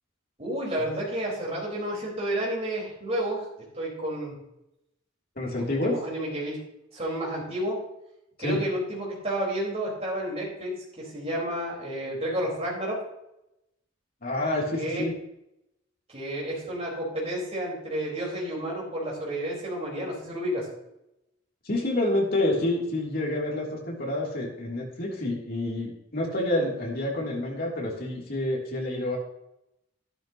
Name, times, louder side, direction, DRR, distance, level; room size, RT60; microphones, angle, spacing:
voice 1, 0.4-3.4 3.7-4.4 5.8-6.6 6.9-7.8 8.4-13.0 14.7-15.0 16.1-20.6, right 1 dB, 30° right, -4 dB, 4.7 m, -31 dB
voice 2, 5.4-6.0 8.4-8.6 14.2-15.1 21.6-29.2, left 1 dB, 50° left, -2 dB, 3.1 m, -28 dB
12.0 x 11.5 x 3.0 m, 0.85 s
head